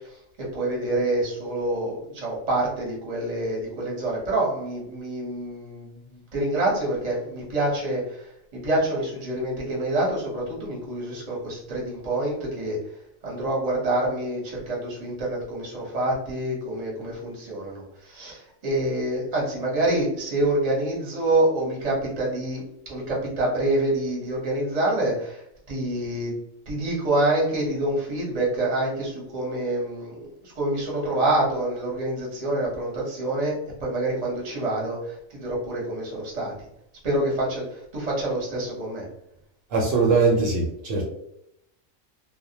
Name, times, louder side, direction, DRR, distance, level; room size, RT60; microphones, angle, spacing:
voice 1, 0.4-5.9 6.3-8.3 8.5-12.8 13.2-22.6 22.9-26.3 26.7-36.5 37.0-39.1, right 1 dB, 35° right, -3 dB, 0.8 m, -26 dB
voice 2, 39.7-41.0, right 4 dB, 70° right, -1 dB, 0.9 m, -21 dB
2.2 x 2.1 x 2.7 m, 0.77 s
omnidirectional pair, 1.4 m